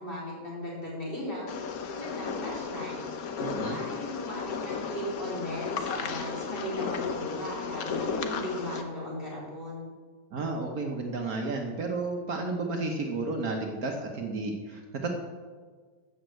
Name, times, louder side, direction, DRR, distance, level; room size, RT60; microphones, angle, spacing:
voice 1, 0.0-1.5 1.9-3.0 3.6-9.9, equal, 30° left, -5 dB, 4.5 m, -37 dB
sound 1, 1.5-8.8, left 5 dB, 60° left, 1.3 m, -34 dB
voice 2, 3.4-3.8 10.3-15.1, right 3 dB, 60° right, 2 dB, 1.5 m, -32 dB
12.5 x 5.5 x 8.1 m, 1.5 s
omnidirectional pair, 1.9 m